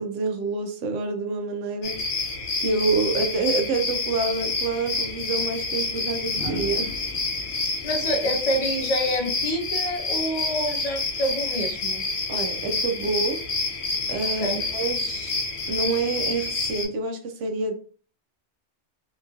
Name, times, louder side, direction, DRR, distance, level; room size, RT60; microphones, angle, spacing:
voice 1, 0.0-2.0 2.6-6.9 12.3-13.4 14.1-15.4 15.7-17.7, right 3 dB, 90° right, 0.9 m, -27 dB
sound 1, 1.8-16.9, left 3 dB, 75° left, 0.9 m, -28 dB
sound 2, 4.8-4.9 6.3-9.3 10.9-11.2, right 1 dB, 55° right, 1.1 m, -39 dB
voice 2, 7.8-12.1 14.4-14.7, equal, 45° left, 0.5 m, -27 dB
2.9 x 2.6 x 2.4 m
omnidirectional pair, 1.2 m